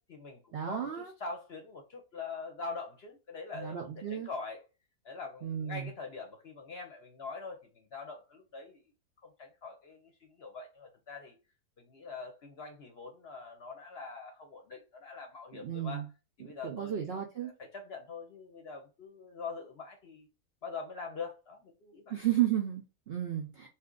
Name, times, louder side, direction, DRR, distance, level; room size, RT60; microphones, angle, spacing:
voice 1, 0.0-4.6 5.0-8.8 9.2-11.4 11.8-16.1 16.4-20.3 20.6-22.2, left 4 dB, 55° left, 0.8 m, -44 dB
voice 2, 0.5-1.1 3.5-4.3 5.4-5.9 15.6-16.1 16.6-17.5 22.1-23.7, right 11 dB, 65° right, 0.6 m, -33 dB
2.8 x 2.5 x 3.6 m
omnidirectional pair, 1.6 m